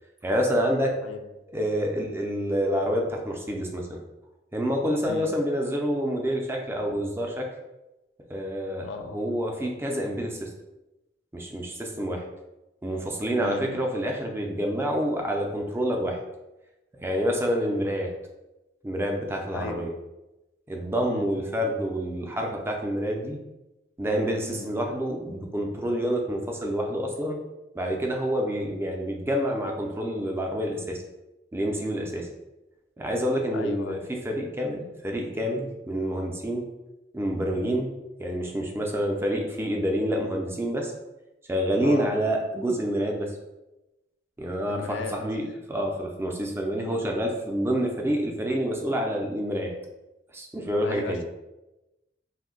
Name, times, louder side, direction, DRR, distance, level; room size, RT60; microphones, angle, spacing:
voice 1, 0.2-1.0 1.5-4.0 4.5-7.5 8.3-10.5 11.3-12.2 12.8-16.2 17.0-18.1 18.8-19.9 20.7-23.4 24.0-27.4 27.7-31.0 31.5-32.3 33.0-36.6 37.1-37.9 38.2-40.9 41.5-43.3 44.4-49.7 50.3-51.2, equal, 15° right, 1 dB, 0.4 m, -28 dB
voice 2, 8.8-9.2 13.4-13.8 19.5-19.8 21.1-21.3 24.5-24.7 33.5-34.0 37.6-37.8 41.8-42.2 44.7-45.2 46.7-47.0 50.8-51.3, left 5 dB, 90° left, 7 dB, 0.3 m, -36 dB
2.6 x 2.1 x 3.7 m, 0.99 s
head